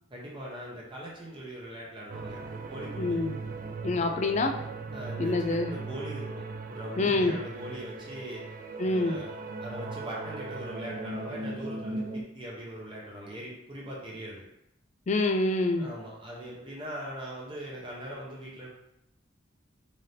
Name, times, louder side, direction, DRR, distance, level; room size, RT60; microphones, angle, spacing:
voice 1, 0.1-2.4 2.7-3.2 4.9-6.4 6.7-8.4 8.8-9.3 9.6-14.4 15.8-18.7, equal, 25° right, -4 dB, 0.8 m, -41 dB
sound 1, 2.1-12.2, right 3 dB, 45° right, 0.3 m, -38 dB
voice 2, 3.0-3.4 3.8-4.5 5.2-5.7 7.0-7.4 8.8-9.2 15.1-15.9, left 2 dB, 35° left, 5 dB, 0.3 m, -26 dB
4.0 x 2.7 x 3.3 m, 0.81 s
head